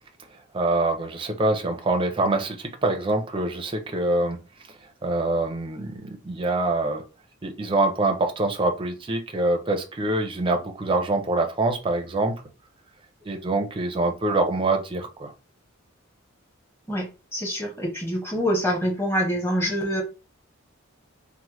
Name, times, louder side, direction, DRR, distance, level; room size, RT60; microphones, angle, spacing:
voice 1, 0.5-4.4 4.7-7.0 7.4-12.4 13.2-15.3, right 2 dB, 25° right, 4 dB, 0.5 m, -25 dB
voice 2, 16.9-20.0, equal, 10° left, -1 dB, 0.9 m, -26 dB
3.1 x 2.0 x 2.9 m, 0.31 s
head